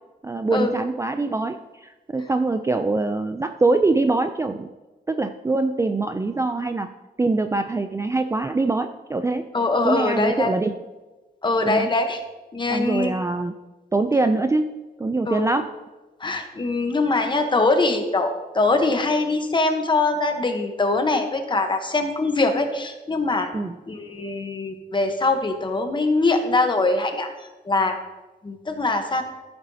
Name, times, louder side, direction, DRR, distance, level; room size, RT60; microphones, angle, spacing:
voice 1, 0.2-4.7 5.1-6.9 7.2-9.5 9.8-10.7 11.6-11.9 12.7-13.5 13.9-15.7 23.5-23.8, right 3 dB, 15° right, 7 dB, 0.3 m, -23 dB
voice 2, 9.5-10.5 11.4-12.2 12.5-13.1 15.3-15.5 16.2-23.5 23.9-27.3 27.6-28.0 28.4-29.2, left 3 dB, 25° left, 5 dB, 1.0 m, -22 dB
14.0 x 7.7 x 2.8 m, 1.2 s
wide cardioid pair, 150°, 18 cm